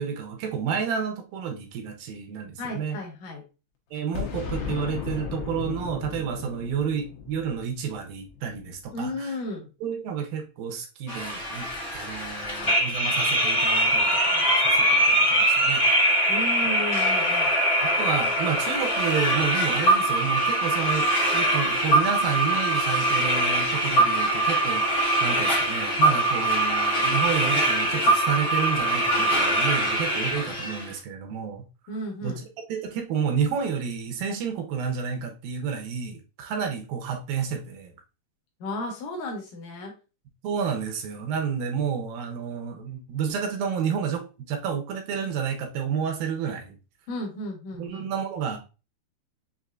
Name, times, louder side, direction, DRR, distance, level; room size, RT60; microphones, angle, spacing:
voice 1, 0.0-3.0 3.9-9.3 9.8-11.7 11.9-15.8 17.8-21.1 21.3-31.6 32.2-32.4 32.7-37.9 40.4-46.8 47.8-48.6, right 7 dB, 80° right, 3 dB, 2.3 m, -30 dB
voice 2, 2.6-3.4 8.9-9.7 16.3-17.5 31.9-32.4 38.6-39.9 47.1-48.1, left 1 dB, 65° left, 1 dB, 2.5 m, -34 dB
Boom, 4.1-8.8, left 7 dB, 90° left, 2.7 m, -35 dB
sound 1, 11.1-30.8, right 1 dB, 45° left, 0.6 m, -23 dB
6.5 x 2.6 x 2.4 m, 0.31 s
omnidirectional pair, 4.3 m